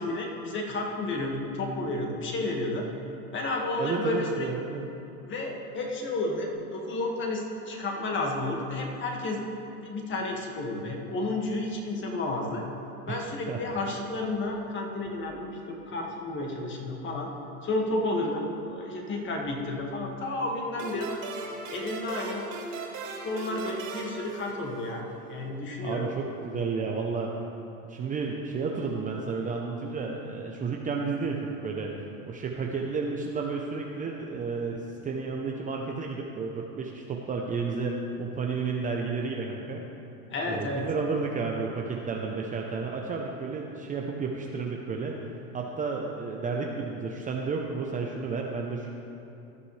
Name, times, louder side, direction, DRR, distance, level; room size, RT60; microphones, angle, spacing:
voice 1, 0.0-2.9 3.3-4.5 5.2-9.4 9.8-12.6 13.0-17.3 17.6-21.2 21.7-22.5 23.2-26.1 40.3-40.8, left 2 dB, 25° left, 0 dB, 2.0 m, -31 dB
voice 2, 3.8-4.9 13.1-13.2 13.5-13.6 25.8-27.4 27.9-31.9 32.2-39.8 40.4-45.2 45.5-48.9, right 4 dB, 20° right, 0 dB, 0.8 m, -32 dB
sound 1, 20.8-25.1, right 3 dB, 45° right, 3.1 m, -38 dB
16.5 x 11.0 x 3.4 m, 2.8 s
hypercardioid pair, 120°, 44 cm